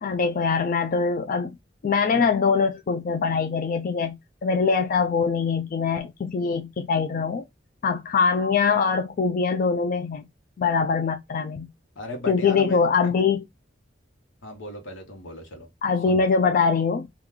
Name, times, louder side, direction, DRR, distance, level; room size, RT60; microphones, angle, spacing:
voice 1, 0.0-1.5 1.8-7.4 7.8-10.3 10.6-11.7 12.3-13.4 15.8-17.1, left 5 dB, 45° left, 0.3 m, -23 dB
voice 2, 12.0-12.8 14.4-15.7 16.0-16.2, left 1 dB, 90° left, 1.0 m, -36 dB
3.0 x 2.3 x 3.6 m
head